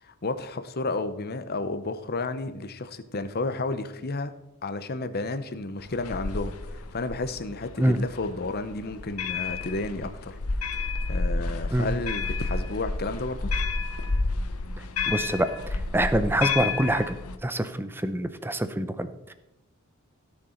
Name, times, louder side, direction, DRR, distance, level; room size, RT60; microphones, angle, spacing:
voice 1, 0.0-4.3 4.6-10.4 10.6-13.5, left 2 dB, 45° left, 11 dB, 0.8 m, -32 dB
sound 1, 5.8-17.4, left 3 dB, 80° left, 0.9 m, -30 dB
voice 2, 15.1-15.5 15.9-17.2 17.4-19.3, right 1 dB, 10° right, 12 dB, 0.6 m, -25 dB
16.0 x 6.5 x 4.4 m, 0.90 s
head